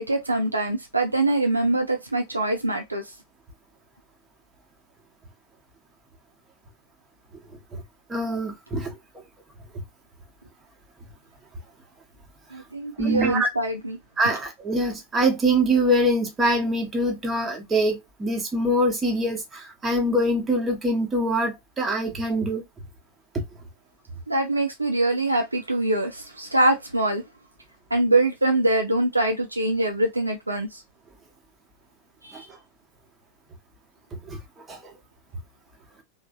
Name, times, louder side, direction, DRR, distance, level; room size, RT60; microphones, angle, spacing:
voice 1, 0.0-3.0 12.5-14.0 24.3-27.2 27.9-30.8 32.2-32.5, right 2 dB, 85° right, 0.5 m, -24 dB
voice 2, 8.1-8.9 13.0-13.5 14.2-22.6 32.3-32.4 34.1-34.9, right 1 dB, 20° right, 0.9 m, -24 dB
3.1 x 2.1 x 2.6 m
figure-of-eight pair, 90°, 0 cm